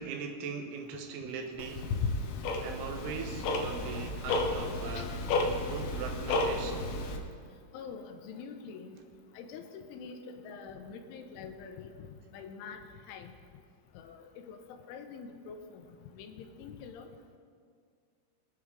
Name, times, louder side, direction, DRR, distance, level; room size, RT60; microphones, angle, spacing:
voice 1, 0.0-1.9 2.6-5.2 5.6-6.9, right 5 dB, 85° right, 4 dB, 3.4 m, -40 dB
Tick-tock, 1.6-7.2, left 2 dB, 70° left, 2.7 m, -32 dB
voice 2, 4.3-4.6 4.9-5.2 7.7-9.0 9.4-12.1 12.3-12.8 13.1-13.3 14.0-14.6 14.9-15.8 16.1-17.1, left 5 dB, 85° left, 6 dB, 3.3 m, -45 dB
22.0 x 9.3 x 3.7 m, 2.1 s
omnidirectional pair, 5.5 m